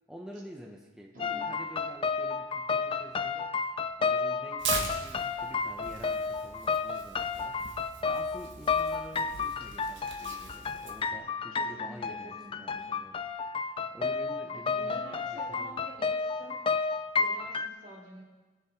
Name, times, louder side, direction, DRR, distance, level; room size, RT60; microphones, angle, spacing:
voice 1, 0.1-3.5 4.0-7.7 8.0-13.2 13.9-16.0, equal, 5° right, -1 dB, 0.8 m, -48 dB
voice 2, 1.1-1.5 11.5-12.9 14.5-16.6 17.2-18.2, equal, 45° right, -4 dB, 3.0 m, -48 dB
sound 1, 1.2-17.7, left 5 dB, 30° left, 0.4 m, -32 dB
Tearing, 4.6-11.1, right 5 dB, 75° right, 1.6 m, -40 dB
21.0 x 7.3 x 3.7 m, 1.3 s
head